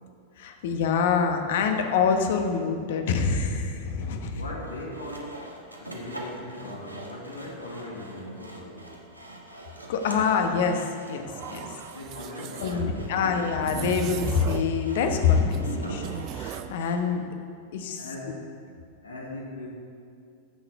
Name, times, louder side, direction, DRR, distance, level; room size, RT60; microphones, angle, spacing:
voice 1, 0.4-4.4 9.9-11.2 11.5-11.8 12.6-17.2 17.7-18.1, left 6 dB, 55° left, 5 dB, 1.0 m, -25 dB
voice 2, 4.3-5.4 5.8-8.9 11.7-13.4 18.0-18.5 19.0-19.7, left 1 dB, 75° left, -2 dB, 2.0 m, -39 dB
Sawing, 4.6-17.0, right 1 dB, 85° right, 1.2 m, -44 dB
sound 1, 11.3-12.7 13.6-14.8 15.0-16.8, right 11 dB, 40° right, 0.5 m, -36 dB
14.5 x 6.0 x 4.8 m, 2.4 s
figure-of-eight pair, 90°, 0 cm